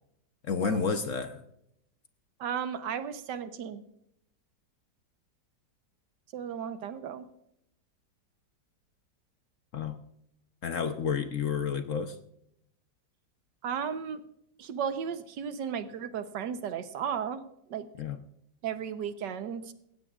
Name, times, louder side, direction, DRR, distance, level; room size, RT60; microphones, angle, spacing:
voice 1, 0.4-1.4 9.7-10.0 10.6-12.2 18.0-18.2, left 6 dB, 55° left, 8 dB, 1.0 m, -30 dB
voice 2, 2.4-3.8 6.3-7.3 13.6-14.2 14.6-17.4 17.7-17.9 18.6-19.7, right 8 dB, 75° right, 11 dB, 1.5 m, -34 dB
16.0 x 16.0 x 2.4 m, 0.77 s
omnidirectional pair, 1.9 m